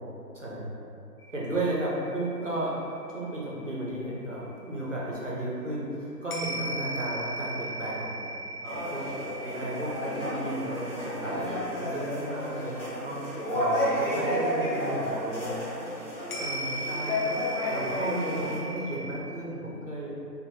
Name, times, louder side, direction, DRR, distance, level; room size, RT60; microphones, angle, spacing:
voice 1, 0.3-0.7 1.3-2.8 3.1-8.2 8.6-12.7 13.0-15.5 16.4-17.3 17.6-20.2, right 1 dB, 50° right, -6 dB, 0.6 m, -34 dB
sound 1, 1.2-4.8 6.3-14.4 14.8-14.9 16.3-19.2, right 1 dB, 60° left, 0.5 m, -39 dB
sound 2, 8.6-18.6, equal, 35° left, 1.0 m, -31 dB
2.7 x 2.6 x 2.6 m, 2.6 s
figure-of-eight pair, 170°, 50 cm